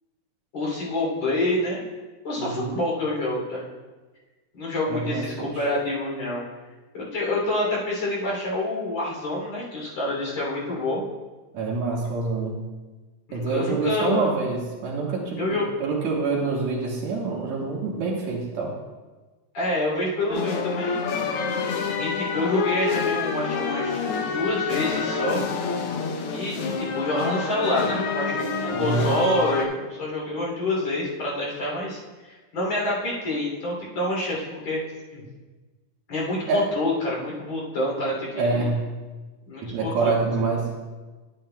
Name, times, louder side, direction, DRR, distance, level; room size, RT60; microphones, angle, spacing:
voice 1, 0.5-1.8 2.2-3.7 4.5-6.4 6.9-11.0 13.3-14.3 15.4-15.7 19.5-21.0 22.0-24.0 24.3-25.4 26.3-34.8 35.1-35.3 36.1-38.6 39.5-40.1, left 1 dB, 60° left, -5 dB, 4.1 m, -27 dB
voice 2, 2.4-2.8 4.9-5.5 11.5-12.6 13.3-18.8 28.7-29.1 36.5-36.7 38.4-38.8 39.6-40.8, right 3 dB, 70° right, -2 dB, 2.4 m, -26 dB
sound 1, 20.3-29.7, left 5 dB, 80° left, 1.3 m, -27 dB
10.5 x 10.5 x 2.2 m, 1.3 s
omnidirectional pair, 3.5 m